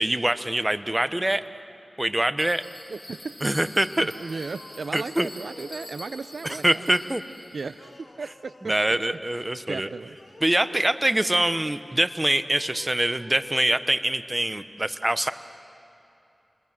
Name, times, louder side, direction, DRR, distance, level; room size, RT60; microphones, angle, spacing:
voice 1, 0.0-1.4 2.0-2.6 3.4-4.1 4.9-5.3 6.4-7.2 8.7-9.9 10.4-15.3, right 1 dB, 25° right, 12 dB, 0.9 m, -24 dB
Bell, 2.4-7.9, left 1 dB, 20° left, 4.9 m, -45 dB
voice 2, 2.9-3.5 4.2-6.8 7.5-8.7 9.7-10.2, right 4 dB, 85° right, 14 dB, 0.5 m, -35 dB
sound 1, 3.9-6.6 7.7-9.2 10.0-11.5 12.4-13.9, left 2 dB, 60° left, 2.1 m, -49 dB
29.0 x 21.0 x 7.6 m, 2.9 s
cardioid pair, 50°, 0 cm